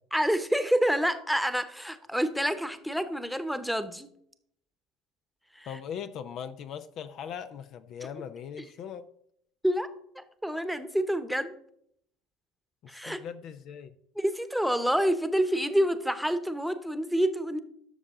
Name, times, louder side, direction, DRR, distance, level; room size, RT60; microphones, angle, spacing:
voice 1, 0.1-4.1 5.5-5.8 8.0-8.1 8.6-8.7 9.6-9.9 10.1-11.5 12.9-13.2 14.2-17.6, equal, ahead, 1.0 m, -28 dB
voice 2, 5.7-9.1 13.0-13.9, left 8 dB, 55° left, 0.6 m, -39 dB
12.0 x 6.5 x 3.7 m
hypercardioid pair, 70°, 0 cm